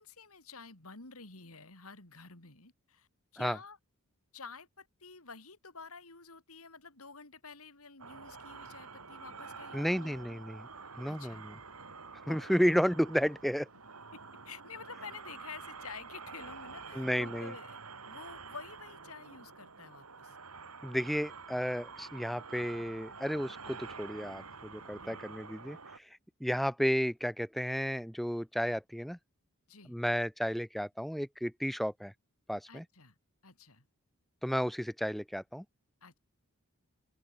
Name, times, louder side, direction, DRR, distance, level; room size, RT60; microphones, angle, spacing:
voice 1, 0.0-3.1 3.3-3.8 4.3-10.4 11.1-11.4 12.3-12.6 14.1-17.8 18.0-20.4 24.9-25.2 29.7-29.9 32.7-33.1 33.4-33.9 36.0-36.2, left 5 dB, 75° left, 4.1 m, -50 dB
sound 1, 8.0-26.0, right 4 dB, 85° right, 4.4 m, -48 dB
voice 2, 9.7-10.7 11.0-11.5 12.3-13.7 16.9-17.5 20.8-25.8 26.4-29.2 29.9-32.1 32.5-32.8 34.4-35.6, equal, ahead, 1.7 m, -32 dB
head